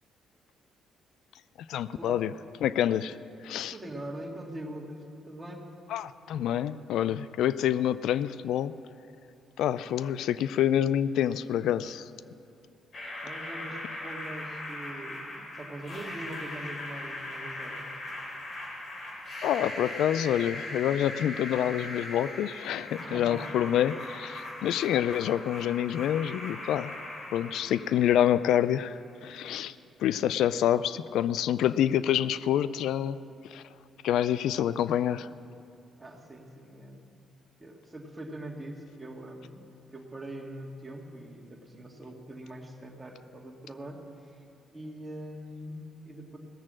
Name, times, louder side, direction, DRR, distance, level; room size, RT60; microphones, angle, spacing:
voice 1, 1.7-2.3 2.6-3.2 3.4-3.7 5.9-8.7 9.6-12.1 19.4-27.0 27.3-33.2 33.5-33.6 34.0-35.3, left 10 dB, 80° left, 16 dB, 0.3 m, -27 dB
voice 2, 3.7-5.7 13.2-17.9 23.0-23.5 36.0-37.2 37.6-39.6 39.9-44.5 44.7-46.4, right 1 dB, 15° right, 0 dB, 1.9 m, -42 dB
sound 1, 12.9-28.9, left 1 dB, 50° left, 3.7 m, -40 dB
18.0 x 7.3 x 7.5 m, 2.5 s
cardioid pair, 90°, 0 cm